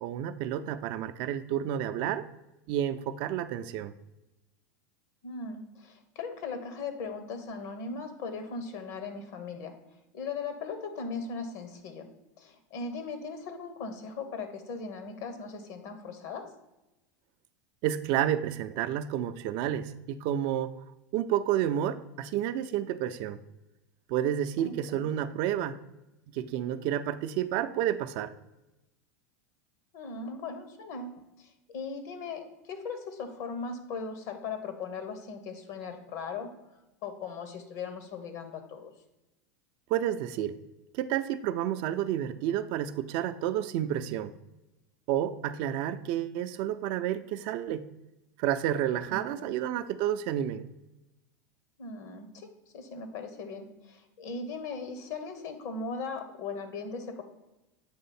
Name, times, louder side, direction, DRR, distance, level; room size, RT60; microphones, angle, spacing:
voice 1, 0.0-2.2 2.7-3.9 17.8-20.7 21.1-23.4 24.1-25.8 26.3-28.3 39.9-40.6 40.9-44.3 45.1-47.8 48.4-50.6, right 11 dB, 55° right, 11 dB, 0.4 m, -30 dB
voice 2, 5.2-9.7 10.1-12.1 12.4-16.5 24.6-25.1 29.9-36.5 37.0-38.9 49.1-49.5 51.8-52.5 52.7-57.2, left 4 dB, 65° left, 7 dB, 1.1 m, -38 dB
7.8 x 3.1 x 4.2 m, 0.96 s
hypercardioid pair, 90°, 10 cm